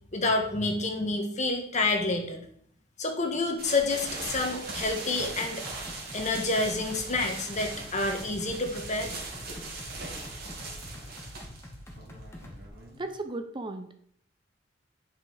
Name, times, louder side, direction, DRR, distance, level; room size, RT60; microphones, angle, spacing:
voice 1, 0.1-2.4 3.0-5.7 6.1-9.1, left 2 dB, 40° left, 4 dB, 1.5 m, -28 dB
sound 1, 3.6-13.2, right 3 dB, 55° right, 2.7 m, -40 dB
sound 2, 5.4-12.7, left 1 dB, 15° left, 1.8 m, -45 dB
voice 2, 13.0-13.9, right 2 dB, 25° right, 8 dB, 0.7 m, -35 dB
9.4 x 5.8 x 4.8 m, 0.65 s
head